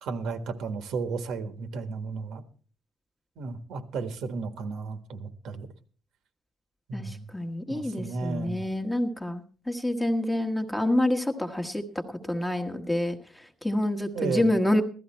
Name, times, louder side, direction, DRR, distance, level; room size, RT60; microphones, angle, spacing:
voice 1, 0.0-2.4 3.4-5.7 6.9-7.3 7.7-8.6 14.1-14.6, right 4 dB, 75° right, 8 dB, 1.6 m, -33 dB
voice 2, 6.9-14.8, left 1 dB, 5° left, 5 dB, 1.2 m, -28 dB
15.5 x 13.0 x 4.4 m, 0.41 s
cardioid pair, 155°, 0 cm